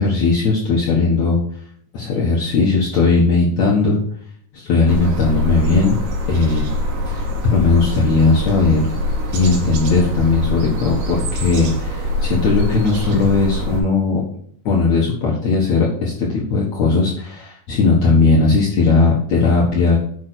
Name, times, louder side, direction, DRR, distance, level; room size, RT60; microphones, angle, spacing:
voice 1, 0.0-1.4 1.9-4.0 4.5-6.0 6.3-6.7 7.0-8.8 9.3-14.2 14.6-20.0, left 3 dB, 85° left, -4 dB, 1.5 m, -17 dB
sound 1, 4.9-13.8, left 1 dB, 60° right, 3.7 m, -24 dB
8.6 x 6.2 x 6.2 m, 0.64 s
omnidirectional pair, 5.8 m